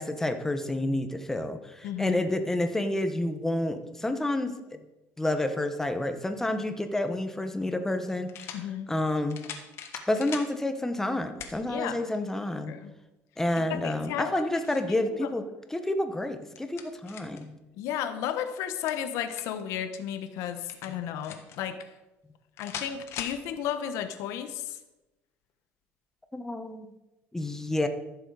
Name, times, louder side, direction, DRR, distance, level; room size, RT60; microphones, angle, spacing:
voice 1, 0.0-4.8 5.2-8.6 8.9-9.4 10.1-12.8 13.4-15.4 15.7-17.6 20.9-21.0 26.3-26.9 27.3-27.9, left 1 dB, 10° left, 7 dB, 1.0 m, -29 dB
voice 2, 1.8-2.2 8.5-8.9 11.7-12.0 12.7-12.9 13.6-14.5 14.9-15.0 15.2-15.3 17.8-21.9 22.6-24.8, left 10 dB, 80° left, 8 dB, 1.0 m, -33 dB
sound 1, 7.1-7.2 8.3-8.6 9.3-10.5 11.4-11.6 12.1-12.2 14.1-14.9 16.3-17.4 18.6-19.6 20.7-21.6 22.6-23.4, left 8 dB, 60° left, 1.5 m, -41 dB
14.5 x 6.9 x 4.9 m, 1.0 s
cardioid pair, 130°, 5 cm